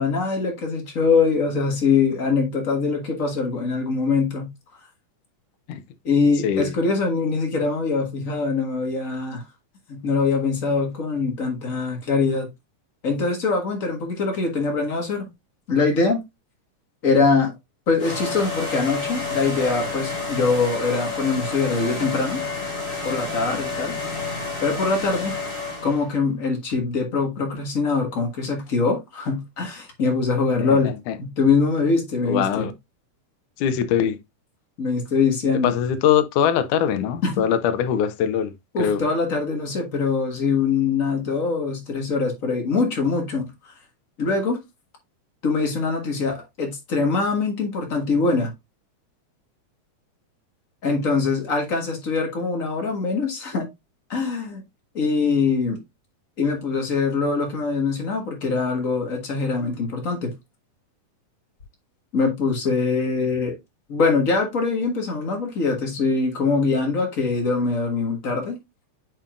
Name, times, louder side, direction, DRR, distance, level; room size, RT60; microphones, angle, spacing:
voice 1, 0.0-4.5 6.0-9.4 9.9-12.5 13.0-15.3 15.7-16.2 17.0-17.5 17.9-22.4 23.0-24.0 24.6-25.3 25.8-30.9 31.2-32.7 34.8-35.7 37.2-37.3 38.7-43.5 44.2-44.6 45.4-48.5 50.8-53.7 54.1-54.6 54.9-55.8 56.4-60.3 62.1-63.6 63.9-68.6, left 4 dB, 40° left, 1.3 m, -23 dB
sound 1, 18.0-26.1, left 4 dB, 20° left, 1.6 m, -30 dB
voice 2, 30.5-31.1 32.3-32.7 33.6-34.2 35.6-38.5 38.8-39.0, left 9 dB, 80° left, 2.2 m, -22 dB
8.9 x 4.4 x 2.4 m
omnidirectional pair, 3.6 m